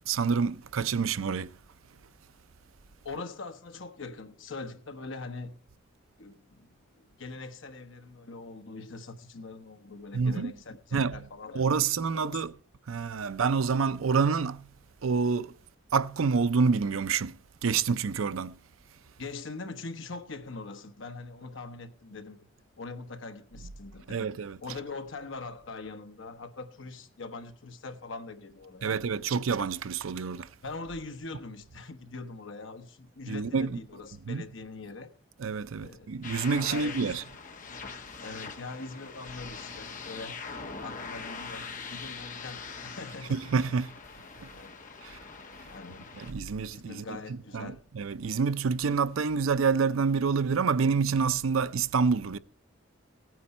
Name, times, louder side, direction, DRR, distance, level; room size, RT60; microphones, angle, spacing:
voice 1, 0.1-1.5 10.1-10.5 10.9-11.2 11.5-12.5 12.9-14.7 15.0-15.5 15.9-17.4 17.6-18.6 24.1-24.6 28.8-30.5 33.3-33.8 34.3-34.4 35.4-37.2 43.3-43.9 45.0-45.2 46.2-47.2 47.5-52.4, right 5 dB, 85° right, 0.5 m, -27 dB
voice 2, 3.0-5.6 6.2-11.7 12.1-12.4 19.2-22.4 22.8-24.3 24.6-28.9 30.6-35.1 35.8-36.2 36.7-37.2 38.2-40.4 40.8-43.4 44.5-44.8 45.6-46.1 46.7-47.8, left 3 dB, 70° left, 1.2 m, -42 dB
sound 1, 36.2-46.3, left 5 dB, 40° left, 1.2 m, -42 dB
16.5 x 9.4 x 4.3 m
head